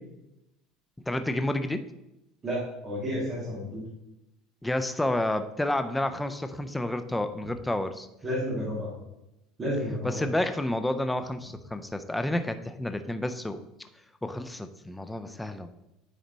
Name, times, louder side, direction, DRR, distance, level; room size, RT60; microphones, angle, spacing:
voice 1, 1.1-1.8 4.6-8.1 10.0-13.6 14.2-15.7, left 1 dB, 5° left, 9 dB, 0.4 m, -30 dB
voice 2, 2.4-3.8 8.2-8.9 9.6-10.2, equal, 20° right, -8 dB, 2.4 m, -31 dB
9.3 x 4.1 x 4.0 m, 0.90 s
cardioid pair, 160°, 0 cm